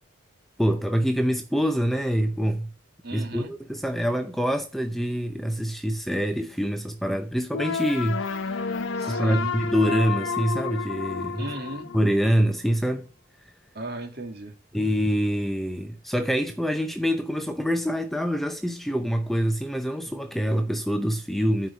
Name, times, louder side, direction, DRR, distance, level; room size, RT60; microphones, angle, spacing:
voice 1, 0.6-2.7 3.1-8.7 9.0-11.5 11.9-13.1 14.7-21.7, equal, ahead, 0.6 m, -25 dB
voice 2, 3.0-3.5 9.0-9.5 11.4-11.9 13.7-14.5, right 2 dB, 50° right, 2.1 m, -35 dB
sound 1, 7.5-12.5, left 5 dB, 70° left, 0.7 m, -30 dB
9.9 x 4.8 x 7.3 m
head